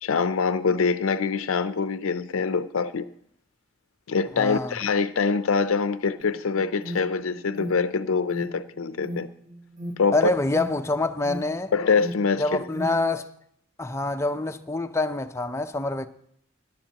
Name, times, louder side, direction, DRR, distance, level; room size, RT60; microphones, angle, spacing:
voice 1, 0.0-3.0 4.1-9.3 10.0-10.3 11.7-12.7, left 5 dB, 90° left, 0.5 m, -24 dB
voice 2, 4.4-4.8 10.1-11.7 12.4-13.3 13.8-16.1, left 2 dB, 15° left, 0.5 m, -26 dB
Alarm, 6.2-12.9, equal, 40° right, 1.8 m, -38 dB
17.5 x 11.0 x 2.9 m
head